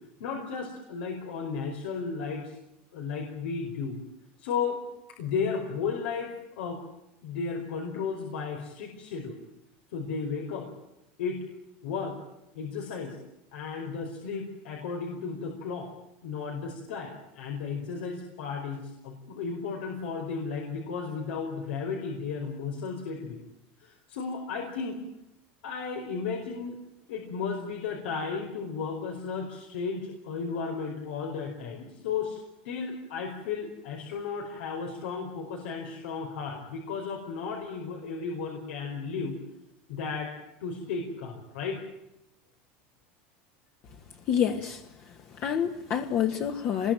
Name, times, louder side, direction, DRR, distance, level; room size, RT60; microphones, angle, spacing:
voice 1, 0.2-2.5 2.9-4.0 4.4-4.8 5.2-6.8 7.2-9.4 9.9-10.7 11.2-11.4 11.8-12.2 12.5-13.2 13.5-15.9 16.2-23.4 23.8-25.0 25.6-26.7 27.1-39.4 39.9-40.3 40.6-41.8, left 5 dB, 90° left, 2 dB, 4.9 m, -34 dB
voice 2, 44.3-44.8 45.4-46.9, left 9 dB, 40° left, 4 dB, 1.7 m, -27 dB
25.5 x 21.5 x 9.1 m, 0.90 s
supercardioid pair, 150°, 6 cm